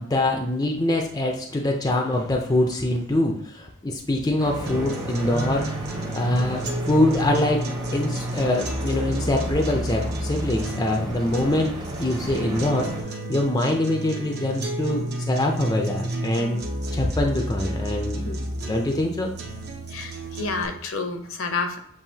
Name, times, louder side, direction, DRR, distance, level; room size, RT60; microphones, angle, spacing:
voice 1, 0.0-5.7 6.1-7.6 7.9-11.7 12.0-16.6 16.9-18.2 18.7-19.3, left 1 dB, 15° left, 2 dB, 0.5 m, -24 dB
sound 1, 4.4-13.0, equal, 20° right, 0.8 m, -34 dB
sound 2, 4.7-20.7, right 1 dB, 50° right, 0.8 m, -31 dB
voice 2, 19.9-21.8, left 4 dB, 65° left, 6 dB, 0.7 m, -29 dB
7.4 x 2.6 x 2.7 m, 0.67 s
head